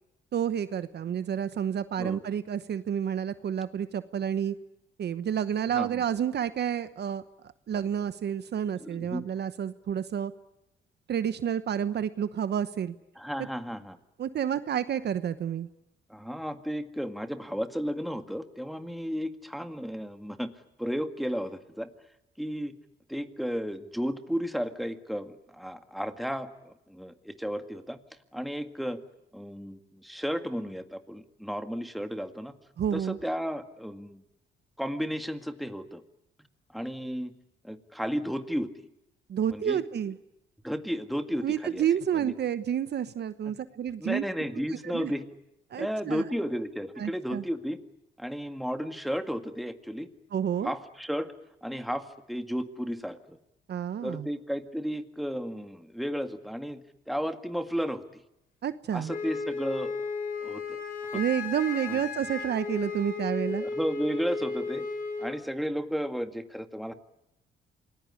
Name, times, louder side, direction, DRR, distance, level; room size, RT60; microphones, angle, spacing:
voice 1, 0.3-4.5 5.0-7.2 7.7-10.3 11.1-12.9 14.2-15.7 32.8-33.2 39.3-40.2 41.4-44.2 44.8-45.1 45.7-46.2 47.0-47.4 50.3-50.7 53.7-54.3 58.6-59.1 61.1-63.7, right 9 dB, 55° right, 12 dB, 1.1 m, -30 dB
voice 2, 5.7-6.0 8.8-9.2 13.2-14.0 16.1-20.5 20.8-21.9 22.4-22.7 23.1-28.0 28.3-29.0 29.3-32.5 32.9-34.2 34.8-36.0 36.7-37.3 37.6-38.9 39.5-39.8 40.6-41.9 42.1-42.4 43.5-43.6 44.0-45.2 45.8-47.8 48.2-50.1 50.6-51.3 51.6-53.4 54.0-56.8 57.1-58.2 58.9-59.9 60.4-60.8 61.1-61.2 61.9-62.0 63.5-64.9 65.2-66.9, equal, ahead, 7 dB, 1.9 m, -33 dB
Wind instrument woodwind instrument, 59.1-65.4, left 4 dB, 45° left, 4.6 m, -34 dB
27.5 x 20.0 x 9.8 m, 0.88 s
cardioid pair, 90°, 20 cm